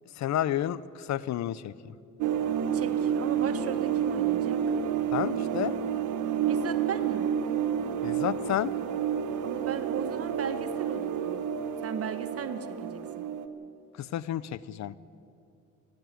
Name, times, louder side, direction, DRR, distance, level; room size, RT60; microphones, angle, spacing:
voice 1, 0.2-1.9 5.1-5.7 8.0-8.7 14.0-15.0, left 12 dB, 65° left, 19 dB, 0.7 m, -31 dB
sound 1, 2.2-13.5, right 8 dB, 85° right, 1.2 m, -29 dB
voice 2, 2.7-4.6 6.5-7.4 9.4-11.4 11.8-13.3, right 6 dB, 50° right, 8 dB, 1.4 m, -36 dB
28.5 x 10.5 x 9.2 m, 2.6 s
cardioid pair, 90°, 30 cm